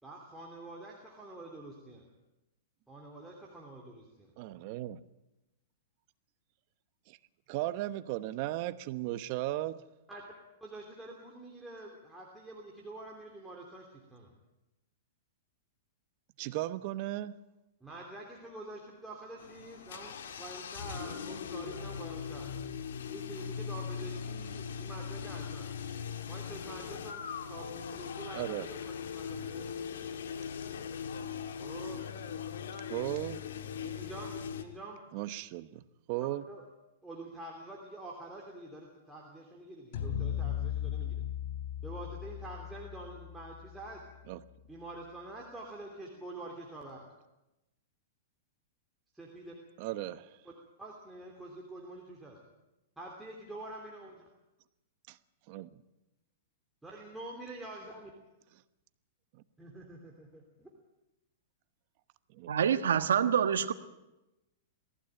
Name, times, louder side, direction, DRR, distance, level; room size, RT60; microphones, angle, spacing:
voice 1, 0.0-2.0 2.9-4.3 10.1-10.2 10.6-14.3 17.8-22.5 23.1-25.7 26.2-28.8 29.1-29.8 31.6-32.1 33.8-35.3 36.5-36.6 37.0-41.2 41.8-44.0 44.7-47.0 49.1-49.5 50.8-52.4 53.0-54.2 56.8-58.1 59.6-60.7, right 2 dB, 5° right, -3 dB, 3.0 m, -46 dB
voice 2, 4.4-5.0 7.1-7.2 7.5-9.8 16.4-17.4 28.3-28.7 32.9-33.4 35.1-36.4 44.3-44.4 49.8-50.4 55.1-55.2 55.5-55.7 59.3-59.4 62.3-62.5, right 15 dB, 45° right, 13 dB, 1.0 m, -36 dB
sound 1, 19.4-34.6, left 7 dB, 80° left, 1.9 m, -40 dB
sound 2, 39.9-44.3, left 10 dB, 60° left, 3.5 m, -37 dB
voice 3, 62.5-63.7, right 8 dB, 90° right, 9 dB, 1.3 m, -26 dB
19.0 x 15.5 x 9.0 m, 0.96 s
hypercardioid pair, 145°, 0 cm